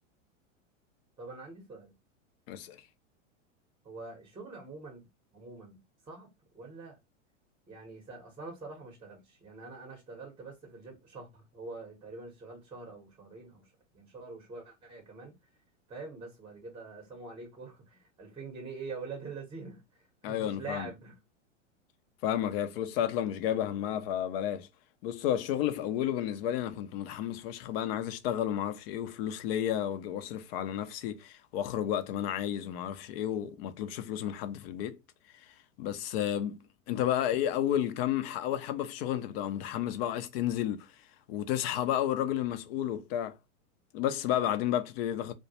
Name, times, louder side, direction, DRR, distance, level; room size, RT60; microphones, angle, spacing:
voice 1, 1.2-1.9 3.8-5.1 5.3-6.3 6.5-7.0 7.7-15.3 15.9-21.2, right 3 dB, 15° right, 0.7 m, -45 dB
voice 2, 2.5-2.8 20.2-20.9 22.2-24.7 25.0-35.0 35.4-40.9 41.3-43.4 43.9-45.3, left 11 dB, 50° left, 0.5 m, -32 dB
2.2 x 2.1 x 2.7 m
hypercardioid pair, 120°, 38 cm